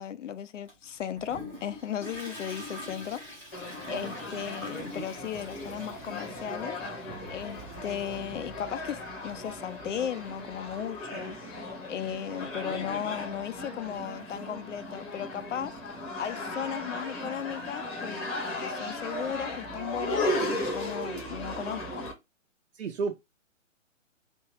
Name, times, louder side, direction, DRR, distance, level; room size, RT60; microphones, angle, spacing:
voice 1, 0.0-3.2 3.9-6.8 7.3-18.2 18.6-22.1, left 9 dB, 70° left, 0.5 m, -36 dB
Toilet flush, 0.7-10.9, left 1 dB, 5° left, 0.5 m, -46 dB
sound 1, 3.5-22.1, left 1 dB, 20° left, 1.0 m, -36 dB
voice 2, 22.7-23.1, right 5 dB, 60° right, 0.6 m, -32 dB
3.4 x 2.6 x 3.1 m
figure-of-eight pair, 130°, 38 cm